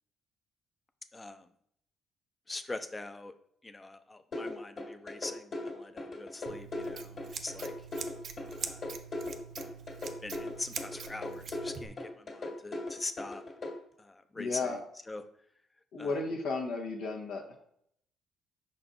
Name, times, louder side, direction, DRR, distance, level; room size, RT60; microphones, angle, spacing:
voice 1, 1.1-1.5 2.5-3.3 3.6-7.7 8.6-8.8 10.2-13.4 14.0-14.8 15.1-15.2 16.0-16.1, left 2 dB, 20° left, 9 dB, 0.5 m, -43 dB
sound 1, 4.3-13.7, left 2 dB, 40° left, 1.8 m, -38 dB
Scissors, 6.5-11.9, right 6 dB, 55° right, 0.6 m, -44 dB
voice 2, 14.4-14.8 15.9-17.6, left 3 dB, 80° left, -1 dB, 1.1 m, -34 dB
5.6 x 4.4 x 3.9 m, 0.69 s
cardioid pair, 110°, 0 cm